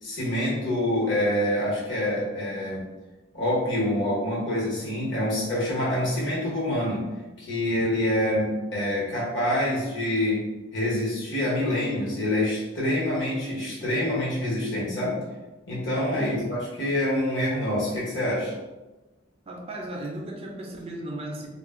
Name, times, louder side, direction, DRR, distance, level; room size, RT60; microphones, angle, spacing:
voice 1, 0.0-2.8 3.3-7.1 7.4-10.5 10.7-15.2 15.7-18.5, left 1 dB, 65° left, -6 dB, 1.2 m, -26 dB
voice 2, 16.2-16.5 19.5-21.5, right 1 dB, 30° right, 0 dB, 0.4 m, -35 dB
2.4 x 2.1 x 3.5 m, 1.1 s
head